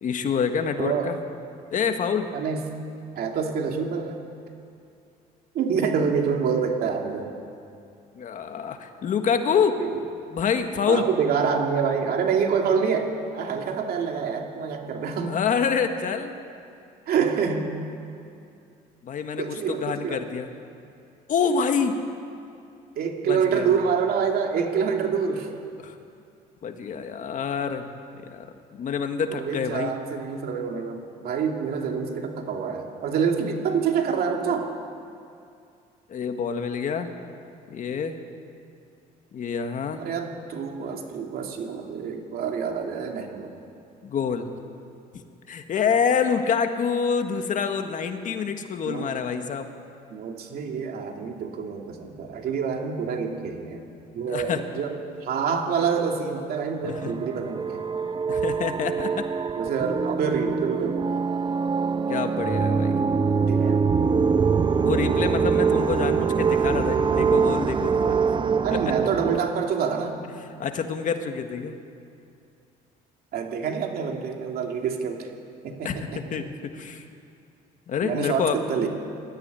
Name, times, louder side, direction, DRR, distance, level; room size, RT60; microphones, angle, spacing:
voice 1, 0.0-1.1 1.7-2.3 8.1-9.8 10.3-11.1 15.2-16.3 19.0-20.5 21.3-22.0 23.3-23.8 25.8-25.9 26.6-27.9 28.3-29.9 36.1-37.1 37.7-38.2 39.3-40.0 44.0-44.5 45.5-49.7 54.3-54.6 56.8-56.9 58.3-59.3 62.1-62.9 64.8-68.2 68.7-68.8 70.6-71.8 75.8-76.0 76.3-77.0 77.9-78.6, left 6 dB, 50° left, 6 dB, 1.7 m, -27 dB
voice 2, 0.8-1.1 2.3-2.6 3.2-4.1 5.5-7.3 9.8-9.9 10.9-15.4 17.1-17.7 19.4-20.2 23.0-25.5 29.3-34.7 40.0-43.5 48.9-49.1 50.1-53.8 54.1-57.8 59.6-61.1 63.5-63.8 68.6-70.2 73.3-75.3 75.6-76.2 78.0-78.9, right 6 dB, 65° right, 2 dB, 2.6 m, -27 dB
sound 1, 56.8-69.4, right 5 dB, 30° right, 0.8 m, -24 dB
20.0 x 13.5 x 9.7 m, 2.5 s
cardioid pair, 110°, 17 cm